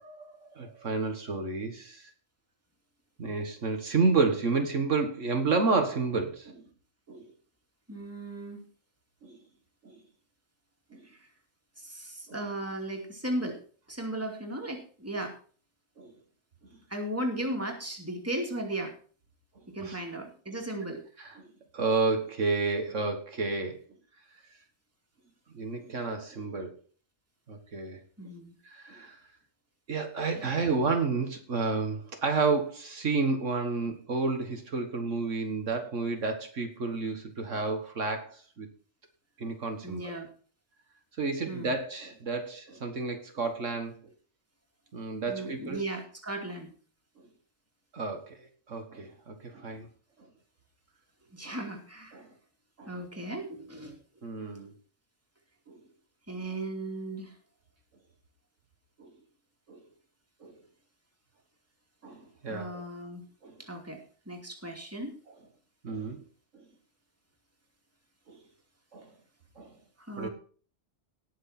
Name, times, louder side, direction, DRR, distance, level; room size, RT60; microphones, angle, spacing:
voice 1, 0.0-2.1 3.2-6.6 7.1-7.3 9.2-9.4 9.8-10.0 10.9-11.0 12.3-12.4 16.0-16.1 19.8-20.0 21.2-21.4 21.7-23.8 25.5-26.7 27.5-28.0 28.6-29.2 29.9-38.7 39.4-40.2 41.2-43.9 44.9-45.8 47.9-49.9 51.5-51.6 52.1-52.3 52.8-52.9 54.2-54.7 55.7-55.8 59.0-59.1 59.7-59.8 60.4-60.5 62.0-62.8 63.4-63.6 65.8-66.2 66.5-66.6 68.9-69.1 69.6-69.7 70.2-70.3, right 4 dB, 70° right, 5 dB, 1.9 m, -31 dB
voice 2, 7.9-8.7 11.1-11.2 11.8-13.6 13.9-15.4 16.9-18.9 19.7-21.0 28.2-28.5 30.3-30.5 39.8-40.3 41.5-41.8 45.3-46.7 51.3-52.2 52.9-54.0 56.3-57.3 62.5-63.3 63.6-65.1 70.0-70.3, right 1 dB, 10° right, 2 dB, 2.5 m, -36 dB
18.5 x 6.4 x 4.3 m, 0.41 s
omnidirectional pair, 1.3 m